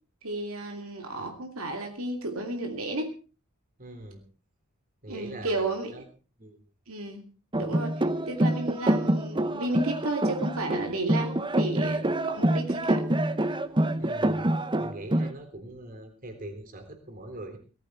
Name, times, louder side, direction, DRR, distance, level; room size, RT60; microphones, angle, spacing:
voice 1, 0.2-3.1 5.1-5.9 6.9-7.3 7.6-13.0, right 2 dB, 75° right, 4 dB, 2.6 m, -33 dB
voice 2, 3.8-4.2 5.0-6.0 6.4-6.6 14.0-14.5 14.8-17.6, right 1 dB, 40° right, 5 dB, 3.6 m, -42 dB
sound 1, 7.5-15.3, right 1 dB, 20° right, 0.8 m, -26 dB
18.5 x 14.0 x 4.5 m, 0.35 s
head